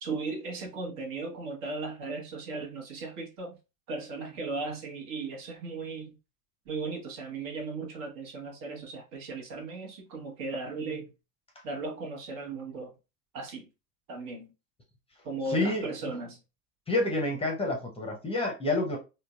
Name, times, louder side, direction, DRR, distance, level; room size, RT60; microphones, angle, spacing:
voice 1, 0.0-3.6 3.9-6.2 6.7-11.1 11.6-12.9 13.3-13.7 14.1-14.5 15.2-16.4, right 3 dB, 55° right, 1.1 m, -36 dB
voice 2, 15.5-15.9 16.9-19.0, left 2 dB, 15° left, 0.7 m, -28 dB
3.7 x 2.1 x 2.3 m
hypercardioid pair, 80°, 45 cm